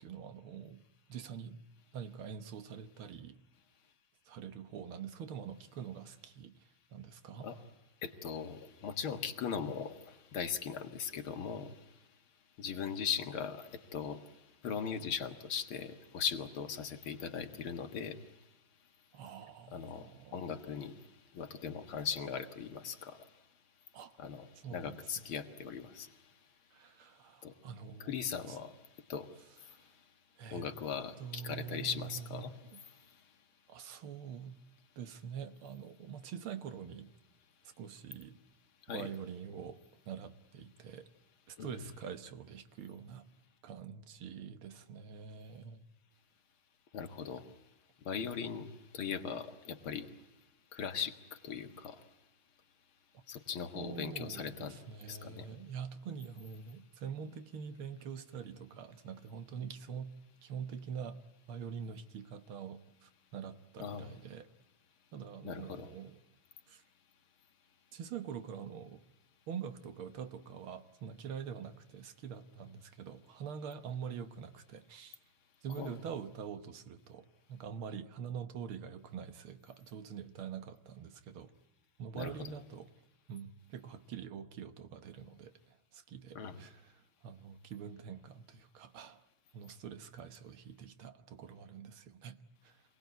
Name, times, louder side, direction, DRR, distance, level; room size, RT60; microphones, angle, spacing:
voice 1, 0.0-1.6 1.9-3.4 4.3-7.5 19.1-20.4 23.9-24.2 24.6-25.2 26.7-28.1 28.5-28.6 29.7-29.8 30.4-30.7 31.2-32.8 33.7-34.6 35.0-37.1 37.6-38.4 38.9-41.1 41.5-43.3 43.6-45.9 53.7-60.1 60.4-61.2 61.5-64.5 65.1-66.2 66.7-66.8 67.9-69.0 69.5-75.2 75.6-81.5 82.0-82.9 83.3-89.2 89.5-92.8, right 7 dB, 75° right, 2.0 m, -45 dB
voice 2, 8.0-12.1 12.6-18.6 19.7-23.5 24.2-26.6 27.4-27.6 28.0-30.1 30.5-33.4 38.8-39.1 41.6-41.9 46.9-52.2 53.3-55.5 63.8-64.1 65.4-65.9 75.8-76.0 82.1-82.5 86.4-86.6, left 7 dB, 70° left, 2.4 m, -40 dB
27.0 x 19.0 x 9.3 m
omnidirectional pair, 2.4 m